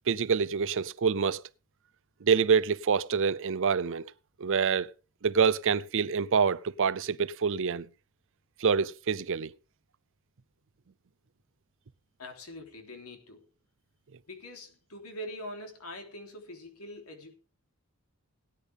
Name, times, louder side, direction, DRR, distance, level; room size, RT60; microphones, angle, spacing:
voice 1, 0.1-1.4 2.2-4.0 4.4-4.9 5.2-7.9 8.6-9.5, right 6 dB, 60° right, 0.6 m, -26 dB
voice 2, 12.2-13.4 14.3-17.4, left 1 dB, 80° left, 3.3 m, -43 dB
17.5 x 10.0 x 3.6 m
head